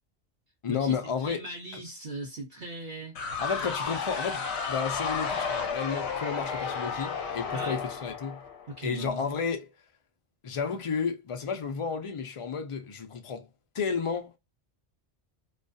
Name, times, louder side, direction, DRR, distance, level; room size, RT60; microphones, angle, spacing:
voice 1, 0.6-1.4 1.7-1.8 3.4-8.4 8.8-9.7 10.4-13.5 13.7-14.4, left 6 dB, 55° left, 0.3 m, -32 dB
voice 2, 1.2-3.2 7.5-7.8 8.7-9.3, right 2 dB, 50° right, 0.8 m, -39 dB
sound 1, 3.1-8.9, left 5 dB, 75° left, 0.9 m, -32 dB
2.3 x 2.3 x 2.5 m
omnidirectional pair, 1.2 m